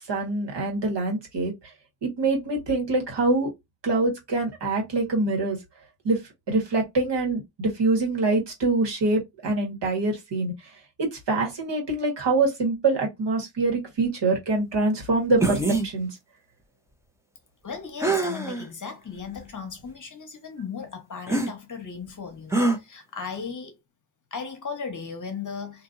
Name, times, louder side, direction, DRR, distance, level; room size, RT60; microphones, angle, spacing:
voice 1, 0.1-1.5 2.0-3.5 3.8-5.6 6.0-6.2 6.5-10.5 11.0-16.2, right 3 dB, 65° right, 1.6 m, -25 dB
sound 1, 15.4-15.9 18.0-18.7 19.3-19.4 21.3-21.5 22.5-22.8, right 2 dB, 5° right, 0.7 m, -24 dB
voice 2, 17.6-23.7 24.3-25.8, left 5 dB, 40° left, 1.0 m, -36 dB
2.8 x 2.6 x 2.5 m
cardioid pair, 70°, 45 cm